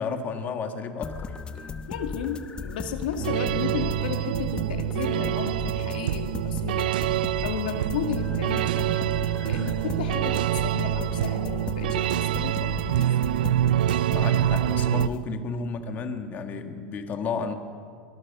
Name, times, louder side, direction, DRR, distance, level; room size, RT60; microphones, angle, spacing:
voice 1, 0.0-1.3 14.1-17.5, left 5 dB, 35° left, 6 dB, 1.6 m, -32 dB
sound 1, 1.0-15.2, left 4 dB, 20° left, 1.0 m, -36 dB
voice 2, 1.9-6.9 7.4-13.1, left 7 dB, 85° left, 6 dB, 2.0 m, -33 dB
sound 2, 3.2-15.1, right 13 dB, 90° right, 0.5 m, -26 dB
23.0 x 19.0 x 6.8 m, 2.2 s
supercardioid pair, 125°, 5 cm